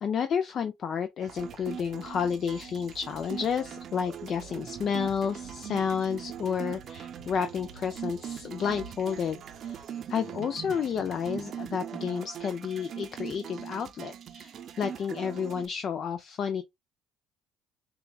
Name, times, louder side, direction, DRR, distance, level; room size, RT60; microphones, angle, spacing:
voice 1, 0.0-9.4 9.6-9.8 10.1-16.6, left 7 dB, 50° left, 0.5 m, -31 dB
sound 1, 1.2-15.7, right 9 dB, 55° right, 0.6 m, -41 dB
sound 2, 1.3-9.8, right 6 dB, 90° right, 0.8 m, -52 dB
6.8 x 2.4 x 2.3 m
supercardioid pair, 75°, 0 cm